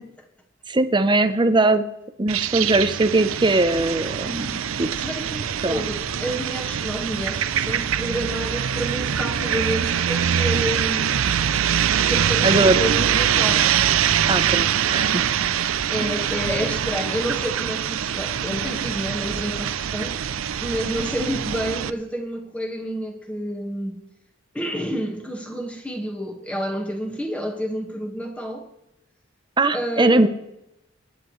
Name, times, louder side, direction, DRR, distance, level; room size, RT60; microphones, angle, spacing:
voice 1, 0.7-1.8 2.2-4.9 5.6-5.8 12.4-12.8 14.3-15.2 29.6-30.3, right 2 dB, 25° right, 0.7 m, -20 dB
sound 1, 2.3-21.9, right 9 dB, 85° right, 0.5 m, -23 dB
voice 2, 5.0-11.2 11.9-13.8 15.9-20.2 20.6-24.0 24.5-28.7 29.7-30.3, equal, 5° left, 1.6 m, -29 dB
26.5 x 9.9 x 3.2 m
head